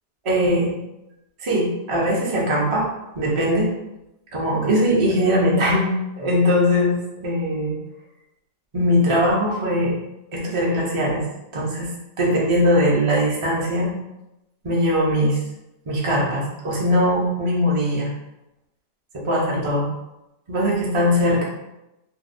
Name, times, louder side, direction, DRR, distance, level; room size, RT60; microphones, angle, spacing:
voice 1, 0.2-0.7 1.4-2.9 3.1-3.7 4.3-5.9 6.2-6.9 7.2-7.8 8.7-9.9 10.3-11.2 11.5-11.9 12.2-13.9 14.6-15.4 15.9-18.1 19.1-19.9 20.5-21.4, equal, 50° right, -4 dB, 0.3 m, -20 dB
2.6 x 2.0 x 2.5 m, 0.91 s
omnidirectional pair, 1.4 m